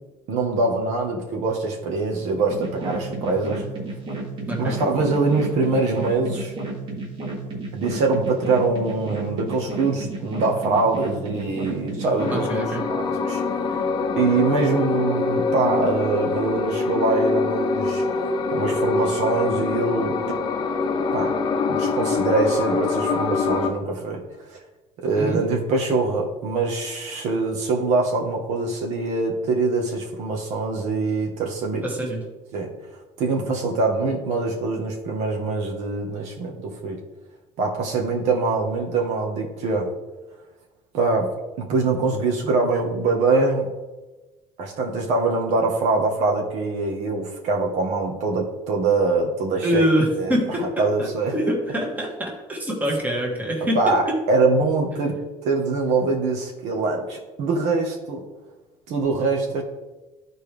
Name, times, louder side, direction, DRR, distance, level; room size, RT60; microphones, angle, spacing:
voice 1, 0.3-3.6 4.6-6.5 7.7-12.6 12.9-13.4 14.2-20.1 21.1-21.3 21.7-24.2 24.5-24.6 25.0-31.8 32.5-32.7 33.2-37.0 37.6-39.9 40.9-41.3 41.6-43.7 44.6-49.8 50.2-51.3 53.7-55.1 55.4-58.2 58.9-59.6, right 3 dB, 65° right, 1 dB, 1.3 m, -23 dB
sound 1, 2.5-12.4, right 2 dB, 40° right, 1.9 m, -32 dB
sound 2, 12.2-23.7, left 4 dB, 35° left, 0.7 m, -24 dB
voice 2, 12.3-12.8 25.2-25.4 31.8-32.2 49.6-53.8, equal, 15° right, -1 dB, 1.5 m, -25 dB
13.0 x 4.5 x 3.4 m, 1.2 s
cardioid pair, 150°, 13 cm